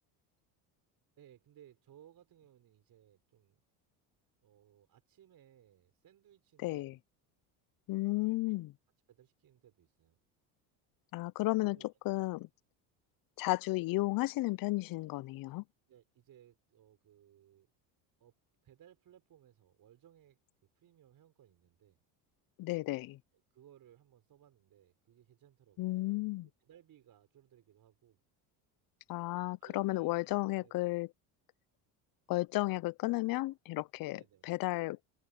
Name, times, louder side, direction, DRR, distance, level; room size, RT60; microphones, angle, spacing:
voice 1, 1.2-3.6 4.4-7.0 8.0-8.2 9.1-10.2 11.6-11.9 15.9-17.7 18.2-18.3 18.6-22.0 23.5-26.3 26.6-28.2 29.4-30.7 34.1-34.5, right 11 dB, 50° right, 5.4 m, -62 dB
voice 2, 6.6-7.0 7.9-8.7 11.1-11.8 12.0-12.5 13.4-15.6 22.6-23.2 25.8-26.5 29.1-31.1 32.3-35.0, left 20 dB, 50° left, 0.6 m, -33 dB
supercardioid pair, 105°, 45 cm